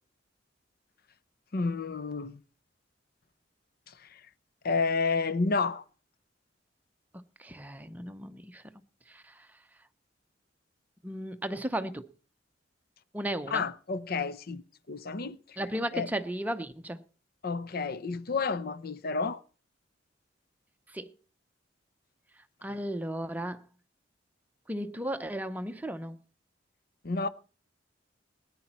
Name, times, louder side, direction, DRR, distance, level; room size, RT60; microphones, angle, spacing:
voice 1, 1.5-2.4 3.9-4.2 4.6-5.8 13.5-14.6 14.9-15.6 15.9-16.1 17.4-19.4 27.0-27.3, left 4 dB, 55° left, 0.7 m, -30 dB
voice 2, 7.4-8.6 9.1-9.3 11.0-12.0 13.1-13.6 15.6-17.0 20.9-21.1 22.6-23.6 24.7-26.2, right 1 dB, 10° right, 0.7 m, -35 dB
18.0 x 9.9 x 4.3 m
head